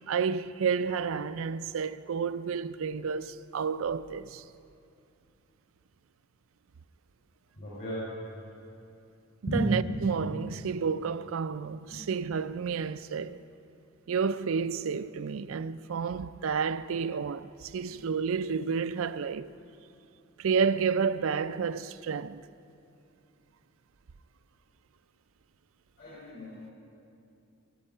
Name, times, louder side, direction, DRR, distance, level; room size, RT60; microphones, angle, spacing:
voice 1, 0.1-4.4 9.4-13.4 14.1-19.5 20.4-22.4, right 6 dB, 70° right, 0.4 m, -30 dB
voice 2, 7.6-8.0 9.5-9.7 11.9-12.0 17.9-18.0 26.0-26.7, left 1 dB, 55° left, 4.6 m, -35 dB
21.0 x 10.0 x 5.5 m
head